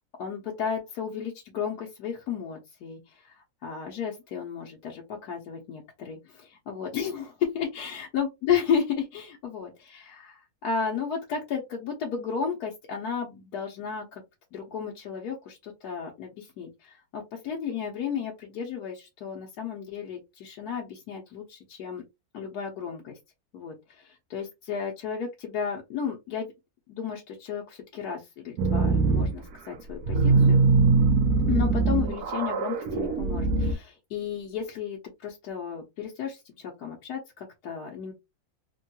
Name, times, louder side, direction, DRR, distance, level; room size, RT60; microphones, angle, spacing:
voice 1, 0.2-14.2 14.5-22.0 22.3-23.2 23.5-26.5 26.9-30.6 31.5-38.1, left 7 dB, 90° left, 1.3 m, -33 dB
sound 1, 28.6-29.3 29.7-33.7, right 4 dB, 80° right, 1.2 m, -22 dB
3.6 x 2.2 x 2.7 m
omnidirectional pair, 1.6 m